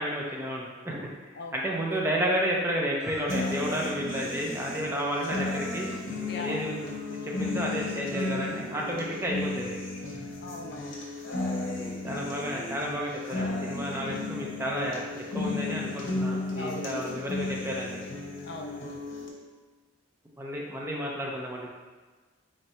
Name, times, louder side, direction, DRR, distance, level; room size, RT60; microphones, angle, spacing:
voice 1, 0.0-5.9 6.4-6.8 7.1-9.8 12.0-18.0 20.4-21.7, equal, 15° right, -2 dB, 0.5 m, -31 dB
sound 1, 3.0-3.3 5.5-6.1 8.1-8.7, right 4 dB, 50° right, 0.7 m, -45 dB
sound 2, 3.3-19.3, left 2 dB, 75° left, 0.8 m, -34 dB
voice 2, 6.3-6.6 10.4-11.0 16.6-17.2 18.4-18.9, left 3 dB, 60° left, 3 dB, 0.4 m, -39 dB
3.2 x 2.7 x 4.2 m, 1.3 s
head